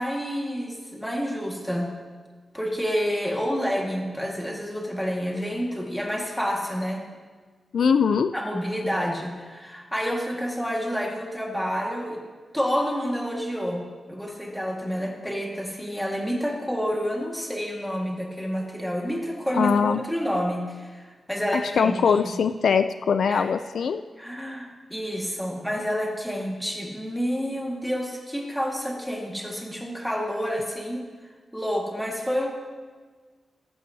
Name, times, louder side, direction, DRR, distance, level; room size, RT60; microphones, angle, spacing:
voice 1, 0.0-1.9 2.5-7.0 8.3-12.2 12.5-13.8 14.1-22.0 23.3-23.5 24.2-31.0 31.5-32.5, equal, 5° left, -1 dB, 1.7 m, -29 dB
voice 2, 7.7-8.3 19.5-20.0 21.5-24.0, left 6 dB, 70° left, 10 dB, 0.3 m, -22 dB
14.0 x 14.0 x 2.8 m, 1.4 s
wide cardioid pair, 165°, 0 cm